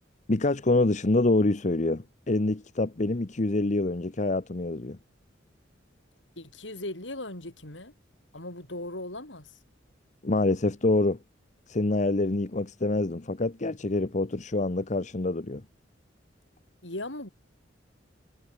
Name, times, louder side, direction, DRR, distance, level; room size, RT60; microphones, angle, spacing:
voice 1, 0.3-5.0 10.2-11.2 11.7-15.6, left 2 dB, 40° left, 0.9 m, -26 dB
voice 2, 6.4-7.9 8.3-9.6 16.8-17.3, left 1 dB, 75° left, 7.0 m, -38 dB
head